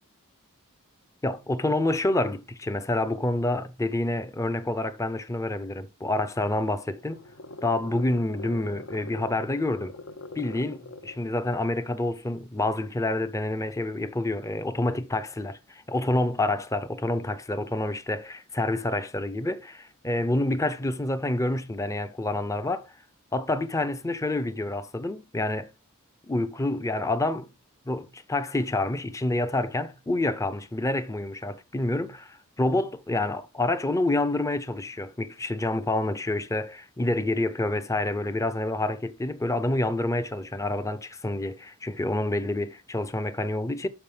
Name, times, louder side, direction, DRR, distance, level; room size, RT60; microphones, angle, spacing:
voice 1, 1.2-7.2 7.6-10.0 10.4-22.9 23.3-25.7 26.3-27.5 27.9-43.9, left 2 dB, 15° left, 0.6 m, -28 dB
sound 1, 6.3-11.3, left 2 dB, 65° left, 0.7 m, -43 dB
7.2 x 5.2 x 5.1 m
head